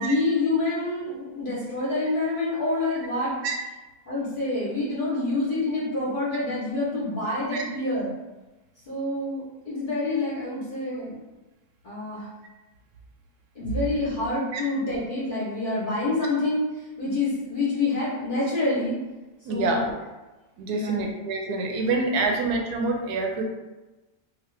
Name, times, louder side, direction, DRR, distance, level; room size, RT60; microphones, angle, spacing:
voice 1, 0.0-3.4 4.1-8.2 8.9-11.1 11.8-12.3 13.5-19.0 19.5-19.9 20.7-21.0 22.1-22.3, left 2 dB, 45° left, -7 dB, 0.7 m, -27 dB
voice 2, 19.5-19.8 20.6-23.4, right 3 dB, 85° right, 2 dB, 1.1 m, -26 dB
2.9 x 2.3 x 3.2 m, 1.1 s
omnidirectional pair, 1.6 m